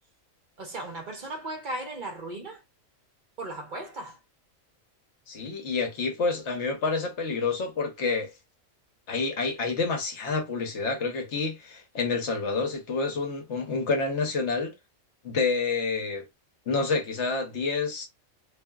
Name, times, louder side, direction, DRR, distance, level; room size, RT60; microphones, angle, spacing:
voice 1, 0.6-2.6 3.4-4.2, right 2 dB, 45° right, 0.8 m, -36 dB
voice 2, 5.3-8.3 9.1-14.7 15.2-16.2 16.7-18.1, left 4 dB, 60° left, 1.1 m, -28 dB
2.7 x 2.6 x 2.2 m
omnidirectional pair, 1.4 m